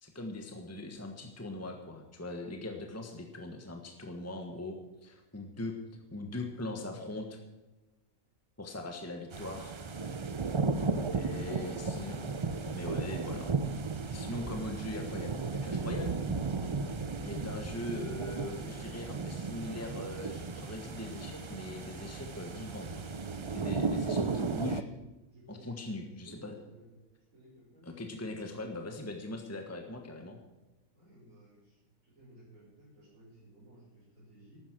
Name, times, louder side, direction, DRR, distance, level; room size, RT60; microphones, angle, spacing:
voice 1, 0.0-5.8 6.1-7.4 8.6-9.7 11.1-12.2 12.7-13.5 14.1-16.2 17.2-23.0 23.5-24.8 25.5-26.5 27.8-30.4, left 2 dB, 10° left, 3 dB, 1.4 m, -41 dB
sound 1, 9.3-24.8, right 4 dB, 40° right, 0.4 m, -35 dB
voice 2, 25.3-26.9 27.3-28.1 28.8-28.9 30.9-34.6, right 1 dB, 70° right, -10 dB, 7.0 m, -56 dB
14.0 x 12.5 x 6.2 m, 1.1 s
omnidirectional pair, 1.5 m